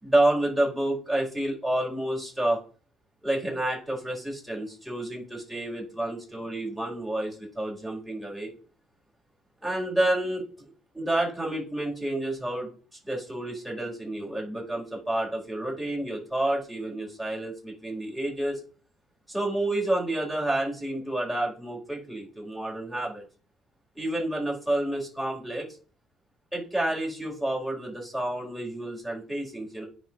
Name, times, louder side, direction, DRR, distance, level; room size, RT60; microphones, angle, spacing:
voice 1, 0.0-2.6 3.2-8.5 9.6-12.7 13.1-18.6 19.3-23.2 23.9-25.7 26.5-29.8, right 1 dB, ahead, -3 dB, 4.5 m, -29 dB
9.3 x 3.5 x 6.0 m, 0.40 s
supercardioid pair, 65°, 0 cm